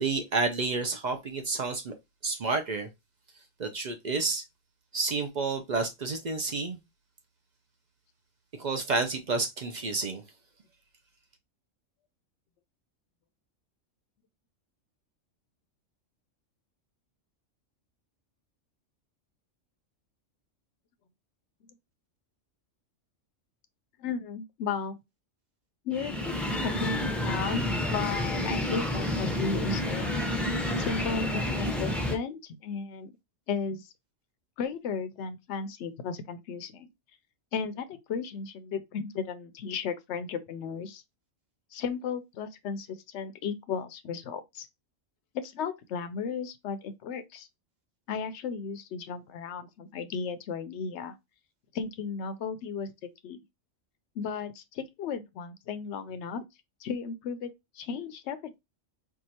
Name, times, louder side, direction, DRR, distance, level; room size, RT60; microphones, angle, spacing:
voice 1, 0.0-1.9 2.2-2.9 3.6-4.4 4.9-6.8 8.5-10.2, right 3 dB, 55° right, 0.5 m, -30 dB
voice 2, 24.0-25.0 25.8-30.3 30.8-33.1 33.5-33.9 34.6-36.9 37.5-41.0 41.7-44.7 45.3-47.5 48.1-51.1 51.7-52.9 53.2-53.4 54.2-56.4 56.8-58.6, left 6 dB, 65° left, 0.8 m, -35 dB
sound 1, 25.9-32.2, left 1 dB, ahead, 0.5 m, -29 dB
4.6 x 2.4 x 2.8 m
omnidirectional pair, 1.4 m